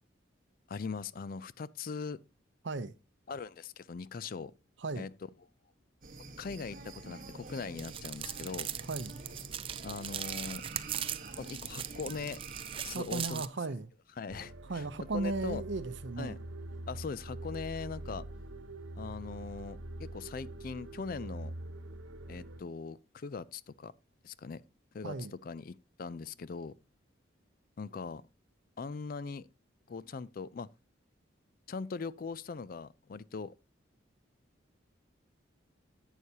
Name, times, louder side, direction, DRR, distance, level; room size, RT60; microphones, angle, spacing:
voice 1, 0.7-2.2 3.3-4.5 5.0-5.1 6.4-8.7 9.8-10.6 11.4-12.4 12.8-13.4 14.2-14.8 15.1-15.6 16.2-16.4 16.9-18.3 19.0-21.5 22.3-23.9 24.2-24.6 24.9-26.7 27.8-28.3 28.8-29.5 29.9-30.7 31.7-33.5, left 5 dB, 45° left, 0.4 m, -40 dB
sound 1, 6.0-13.0, right 3 dB, 45° right, 1.3 m, -47 dB
sound 2, 7.8-13.5, right 10 dB, 30° right, 0.4 m, -40 dB
voice 2, 8.8-9.2 12.9-13.9 14.7-16.4 25.0-25.3, right 3 dB, 65° right, 0.7 m, -36 dB
sound 3, 14.3-22.6, right 1 dB, 90° right, 1.0 m, -44 dB
11.0 x 8.2 x 2.8 m
head